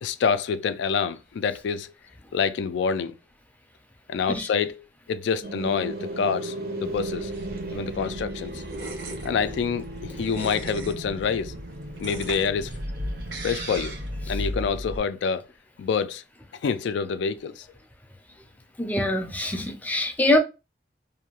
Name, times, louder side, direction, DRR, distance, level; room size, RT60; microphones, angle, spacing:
voice 1, 0.0-1.9 2.3-3.2 4.1-7.3 7.7-8.6 9.2-11.5 12.0-12.7 13.4-14.0 14.3-15.5 15.8-16.2 16.6-17.7, left 6 dB, 80° left, 0.3 m, -27 dB
sound 1, 5.4-14.7, right 2 dB, 55° right, 0.5 m, -37 dB
sound 2, 6.8-15.0, equal, 80° right, 0.8 m, -36 dB
voice 2, 18.8-20.4, left 1 dB, 10° left, 0.4 m, -24 dB
2.7 x 2.2 x 2.8 m
head